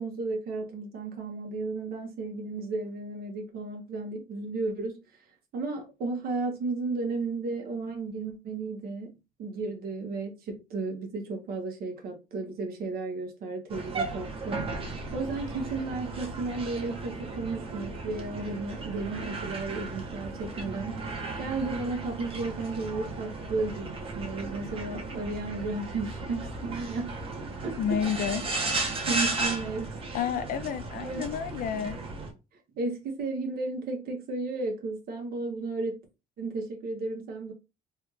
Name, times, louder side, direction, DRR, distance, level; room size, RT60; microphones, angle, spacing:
voice 1, 0.0-5.0 5.5-21.0 21.4-27.1 27.4-27.8 29.0-30.0 30.9-31.3 32.8-36.1 36.4-37.5, right 3 dB, 65° right, 1.1 m, -34 dB
sound 1, 13.7-32.3, right 3 dB, 35° right, 1.0 m, -35 dB
voice 2, 27.8-28.4 30.1-32.0, left 8 dB, 55° left, 0.4 m, -30 dB
3.4 x 2.4 x 3.0 m
cardioid pair, 110°, 17 cm